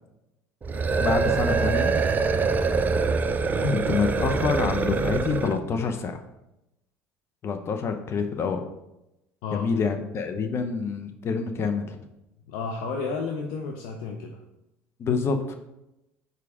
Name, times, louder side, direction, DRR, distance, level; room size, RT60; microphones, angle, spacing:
sound 1, 0.6-5.6, right 4 dB, 25° right, 0.5 m, -24 dB
voice 1, 1.0-1.9 3.6-6.2 7.4-8.6 9.5-12.0 15.0-15.6, left 5 dB, 40° left, 7 dB, 0.8 m, -27 dB
voice 2, 12.5-14.4, left 4 dB, 70° left, 1 dB, 0.7 m, -32 dB
5.0 x 4.7 x 4.9 m, 0.89 s
supercardioid pair, 85°, 6 cm